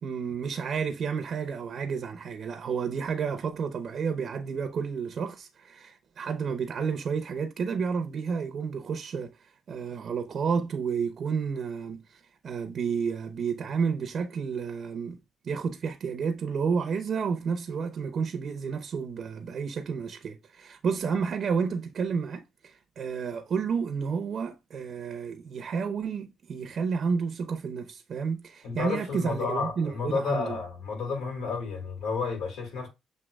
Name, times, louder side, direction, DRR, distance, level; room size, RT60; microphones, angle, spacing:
voice 1, 0.0-15.2 15.4-30.6, right 6 dB, 55° right, 0.7 m, -31 dB
voice 2, 28.6-32.9, left 4 dB, 80° left, 2.3 m, -31 dB
7.4 x 2.9 x 2.3 m
cardioid pair, 90°, 0 cm